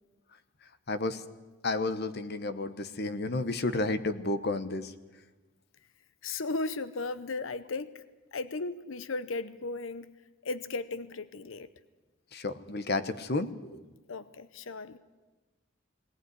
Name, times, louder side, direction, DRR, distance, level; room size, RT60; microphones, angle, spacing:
voice 1, 0.9-1.2 1.6-4.9 12.3-13.8, left 2 dB, 50° left, 12 dB, 1.1 m, -31 dB
voice 2, 6.2-8.0 8.3-10.1 10.4-11.7 14.1-15.0, left 3 dB, 70° left, 14 dB, 0.7 m, -36 dB
20.0 x 18.5 x 9.7 m, 1.2 s
head